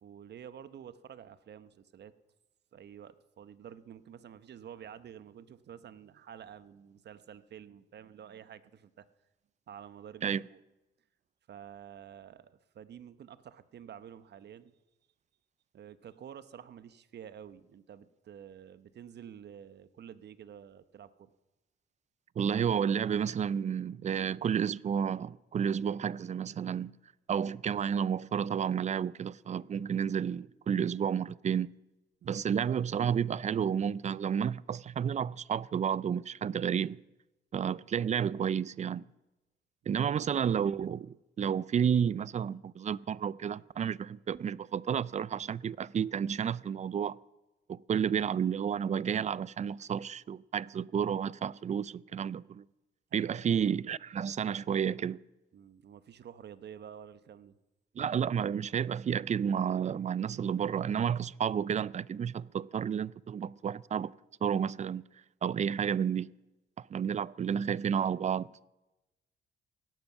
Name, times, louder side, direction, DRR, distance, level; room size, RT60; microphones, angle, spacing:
voice 1, 0.0-2.1 2.7-9.1 9.7-10.6 11.5-14.8 15.7-21.3 32.2-32.5 53.1-53.4 55.5-57.6, right 9 dB, 60° right, 0.9 m, -50 dB
voice 2, 22.4-26.9 27.3-31.7 32.2-37.0 37.5-39.0 39.9-47.2 47.7-52.6 53.1-55.2 58.0-64.1 64.4-65.0 65.4-66.3 66.8-68.5, right 8 dB, 35° right, 0.4 m, -31 dB
17.0 x 12.0 x 7.1 m
cardioid pair, 90°, 20 cm